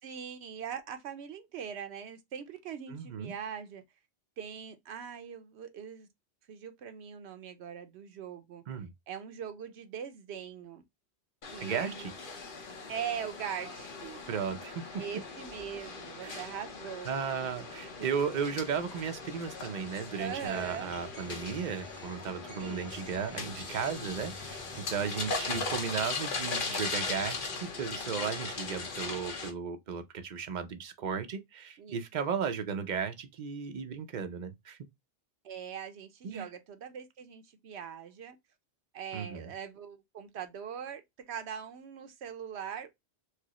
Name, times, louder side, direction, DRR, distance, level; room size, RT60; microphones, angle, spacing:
voice 1, 0.0-3.8 4.4-6.1 6.5-8.6 9.1-10.8 11.5-12.1 12.9-14.3 15.0-17.1 20.2-20.9 22.6-22.9 31.8-32.0 35.4-38.4 38.9-42.9, right 8 dB, 75° right, 0.9 m, -41 dB
voice 2, 2.9-3.3 8.7-8.9 11.6-11.9 14.3-14.8 16.2-16.5 17.0-34.8 36.2-36.5 39.1-39.5, right 6 dB, 50° right, 0.6 m, -35 dB
sound 1, 11.4-29.5, left 4 dB, 55° left, 0.9 m, -39 dB
sound 2, 20.4-25.8, left 2 dB, 85° left, 1.5 m, -50 dB
4.6 x 2.0 x 2.9 m
omnidirectional pair, 1.1 m